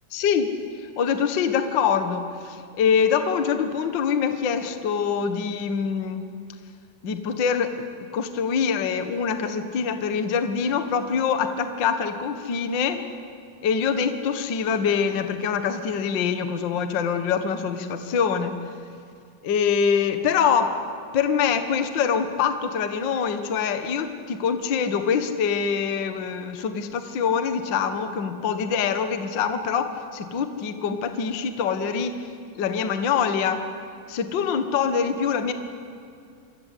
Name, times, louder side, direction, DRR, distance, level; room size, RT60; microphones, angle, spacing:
voice 1, 0.1-6.2 7.0-7.8 8.1-13.0 13.6-18.5 19.4-20.8 21.1-32.2 32.5-33.6 34.1-35.5, left 6 dB, 80° left, 8 dB, 1.0 m, -24 dB
27.5 x 24.0 x 8.5 m, 2.3 s
omnidirectional pair, 4.5 m